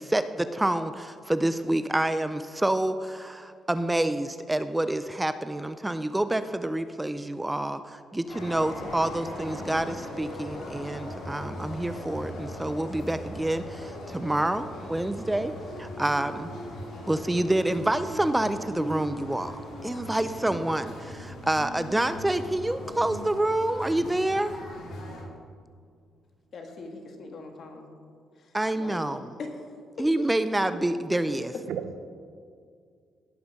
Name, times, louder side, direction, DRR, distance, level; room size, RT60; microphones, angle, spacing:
voice 1, 0.0-15.5 15.8-16.5 17.1-24.6 28.5-29.4 30.0-31.5, right 1 dB, 10° right, 11 dB, 0.4 m, -28 dB
sound 1, 8.3-25.2, equal, 70° left, 3.0 m, -39 dB
voice 2, 26.5-27.9 28.4-29.5 30.0-30.1, left 3 dB, 55° left, 3 dB, 1.7 m, -42 dB
voice 3, 31.1-32.0, right 8 dB, 90° right, 9 dB, 0.7 m, -37 dB
16.5 x 5.5 x 5.3 m, 2.2 s
cardioid pair, 90°, 0 cm